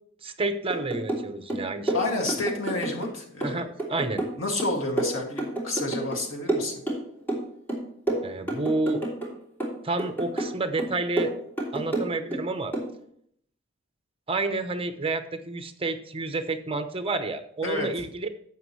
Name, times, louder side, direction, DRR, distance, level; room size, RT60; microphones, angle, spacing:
voice 1, 0.2-2.3 3.4-4.2 8.2-9.0 9.8-11.3 11.7-12.7 14.3-18.3, right 2 dB, 30° right, 9 dB, 0.9 m, -30 dB
sound 1, 0.7-1.2 1.5-3.1 3.4-6.2 6.5-7.4 7.7-9.3 9.6-10.5 10.8-12.4 12.7-12.9, right 2 dB, 10° left, 3.0 m, -29 dB
voice 2, 1.9-3.6 4.4-6.8 17.6-18.0, left 2 dB, 85° left, 0 dB, 2.4 m, -30 dB
11.5 x 8.0 x 3.2 m, 0.65 s
head